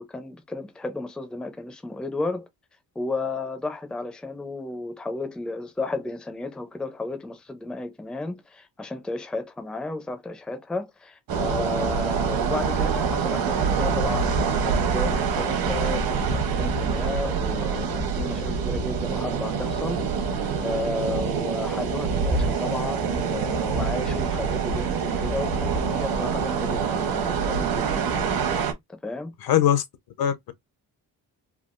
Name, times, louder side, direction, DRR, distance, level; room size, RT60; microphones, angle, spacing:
voice 1, 0.0-2.5 3.0-28.2 28.9-29.3, left 2 dB, ahead, 0.5 m, -33 dB
sound 1, 11.3-28.7, right 5 dB, 60° right, 1.0 m, -25 dB
voice 2, 29.4-29.8 30.2-30.5, left 10 dB, 60° left, 0.8 m, -21 dB
3.6 x 2.3 x 2.5 m
cardioid pair, 140°, 41 cm